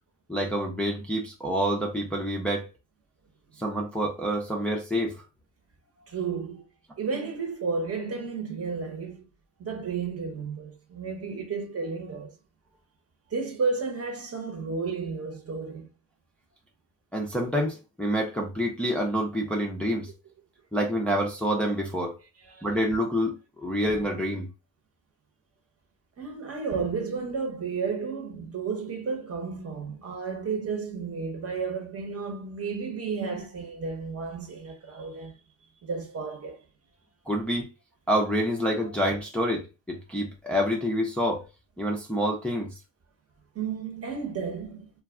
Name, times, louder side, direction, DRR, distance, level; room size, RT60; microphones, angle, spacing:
voice 1, 0.3-2.7 3.6-5.2 17.1-20.1 20.7-22.1 22.6-24.5 37.3-37.7 38.1-41.4 41.8-42.7, equal, 5° left, 0.6 m, -27 dB
voice 2, 6.1-6.6 7.0-9.2 9.6-12.4 13.3-15.9 22.4-22.7 24.0-24.2 26.2-35.4 35.8-36.6 43.5-44.9, right 5 dB, 30° right, 1.0 m, -32 dB
2.3 x 2.2 x 3.6 m
supercardioid pair, 80°, 44 cm